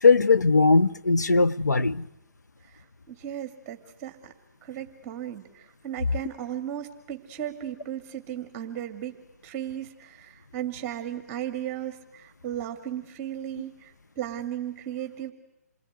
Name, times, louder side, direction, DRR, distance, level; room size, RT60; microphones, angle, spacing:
voice 1, 0.0-2.1, left 4 dB, 85° left, 1.0 m, -19 dB
voice 2, 2.7-4.3 4.6-9.1 9.4-15.3, right 11 dB, 25° right, 2.2 m, -36 dB
28.0 x 22.0 x 9.5 m
figure-of-eight pair, 140°, 9 cm